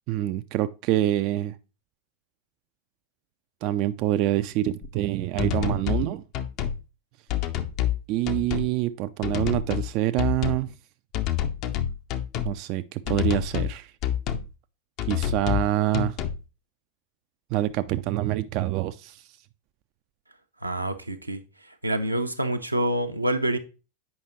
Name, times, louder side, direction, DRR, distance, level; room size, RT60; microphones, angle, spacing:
voice 1, 0.1-1.5 3.6-6.2 8.1-10.7 12.5-13.9 15.1-16.2 17.5-19.2, right 14 dB, 40° right, 0.3 m, -26 dB
sound 1, 4.8-4.9 5.4-6.1 6.3-6.8 7.3-8.0 8.3-8.7 9.2-9.9 10.2-10.7 11.1-12.6 13.1-13.7 14.0-14.5 15.0-15.7 15.9-16.4, left 10 dB, 40° left, 0.6 m, -27 dB
voice 2, 20.6-21.4 21.8-23.6, right 1 dB, 85° right, 0.7 m, -26 dB
8.1 x 5.3 x 3.0 m
figure-of-eight pair, 90°, 0 cm